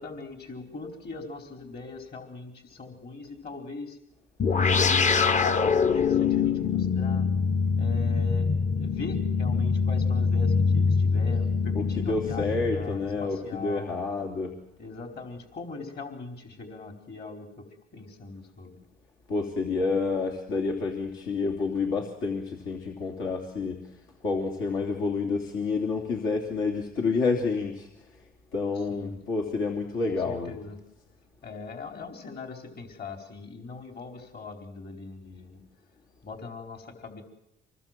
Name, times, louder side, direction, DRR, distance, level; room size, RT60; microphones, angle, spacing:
voice 1, 0.0-4.0 4.6-7.3 7.8-13.9 14.8-17.5 17.9-18.8 28.9-29.2 30.0-30.8 31.4-35.6 36.2-37.2, left 3 dB, 55° left, 3 dB, 4.5 m, -41 dB
sound 1, 4.4-13.2, left 5 dB, 35° left, 0.8 m, -24 dB
voice 2, 11.7-14.5 19.3-23.8 24.2-27.9 28.5-30.5, left 4 dB, 85° left, 0 dB, 3.1 m, -29 dB
26.5 x 20.5 x 7.6 m, 0.83 s
cardioid pair, 90°, 20 cm